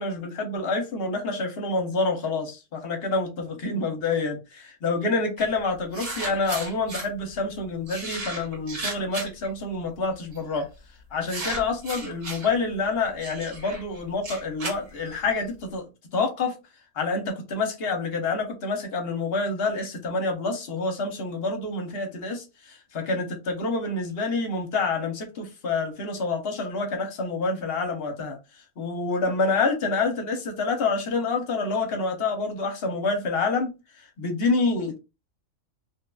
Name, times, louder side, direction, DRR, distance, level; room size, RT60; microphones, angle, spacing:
voice 1, 0.0-10.6 11.1-16.6 16.9-28.4 28.8-33.7 34.2-35.0, left 3 dB, 55° left, 0.9 m, -27 dB
sound 1, 5.4-5.5 5.9-7.1 7.9-9.5 10.3-10.6 11.3-12.5 13.2-15.4, right 2 dB, 80° right, 1.8 m, -35 dB
3.0 x 2.3 x 2.2 m
omnidirectional pair, 1.4 m